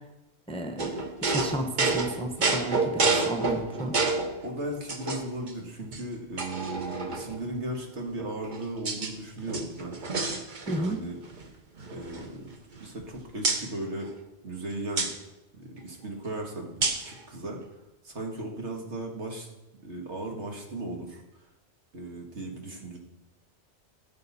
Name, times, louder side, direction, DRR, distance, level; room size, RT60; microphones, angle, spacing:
voice 1, 0.5-0.9 1.2-3.9 10.7-11.0, right 1 dB, 5° left, 4 dB, 0.7 m, -32 dB
sound 1, 0.8-4.4 4.9-5.5 5.9-6.0 6.4-7.4 8.2-9.1 9.4-11.0 11.2-11.5 11.8-13.1 13.4-13.7 15.0-15.1 16.8-17.1, right 3 dB, 45° right, 1.1 m, -29 dB
voice 2, 4.4-10.0 10.6-11.2 11.9-12.5 12.8-14.1 14.4-15.1 15.5-17.6 18.0-19.5 19.8-21.2 21.9-23.0, right 1 dB, 70° right, 1 dB, 2.0 m, -36 dB
15.5 x 6.6 x 4.1 m, 0.96 s
omnidirectional pair, 1.2 m